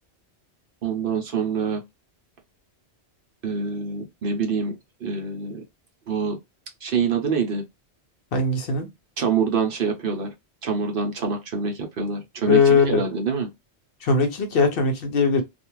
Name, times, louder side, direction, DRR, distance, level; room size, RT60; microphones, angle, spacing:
voice 1, 0.8-1.8 3.4-4.8 5.0-5.6 6.1-6.4 6.8-7.6 9.2-10.3 10.6-13.5, right 5 dB, 60° right, 0.8 m, -25 dB
voice 2, 8.3-8.9 12.5-13.0 14.0-15.4, left 4 dB, 60° left, 0.8 m, -20 dB
2.4 x 2.3 x 3.0 m
omnidirectional pair, 1.1 m